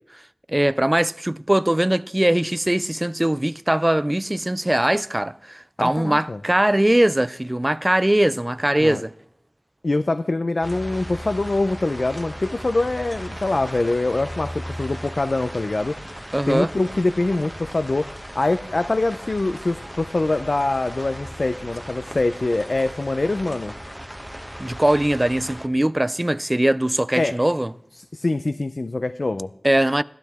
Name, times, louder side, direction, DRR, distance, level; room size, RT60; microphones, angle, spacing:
voice 1, 0.5-9.1 16.3-16.7 24.6-27.7 29.6-30.0, right 1 dB, 25° right, 0.3 m, -21 dB
voice 2, 5.8-6.4 8.8-9.0 9.8-15.9 16.5-18.1 18.3-23.7 27.2-27.4 27.9-29.5, left 2 dB, 65° left, 0.5 m, -24 dB
sound 1, 10.6-25.7, equal, 5° right, 0.9 m, -37 dB
16.0 x 12.0 x 3.5 m
wide cardioid pair, 50°, 0 cm